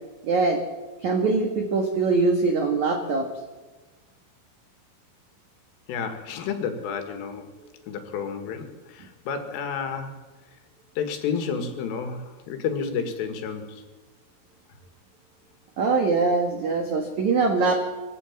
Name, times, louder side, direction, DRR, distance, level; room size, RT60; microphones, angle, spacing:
voice 1, 0.2-0.6 1.0-3.3 15.8-17.9, right 3 dB, 75° right, 4 dB, 1.7 m, -22 dB
voice 2, 5.9-7.5 7.9-10.2 11.0-13.8, left 6 dB, 75° left, 7 dB, 4.5 m, -31 dB
22.5 x 15.5 x 8.7 m, 1.3 s
omnidirectional pair, 5.9 m